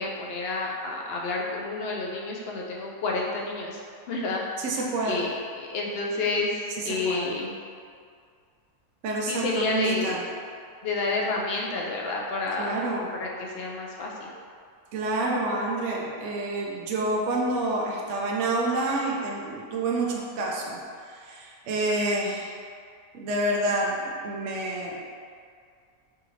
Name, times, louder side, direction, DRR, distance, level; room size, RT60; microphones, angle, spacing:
voice 1, 0.0-3.8 4.1-4.4 5.1-7.5 9.2-10.2 10.8-12.8 13.2-14.3, left 3 dB, 75° left, -2 dB, 0.5 m, -30 dB
voice 2, 4.6-5.2 6.8-7.3 9.0-10.2 12.6-13.1 14.9-22.5 23.1-25.0, right 2 dB, 65° right, -2 dB, 0.8 m, -28 dB
4.8 x 2.6 x 3.1 m, 2.2 s
omnidirectional pair, 1.5 m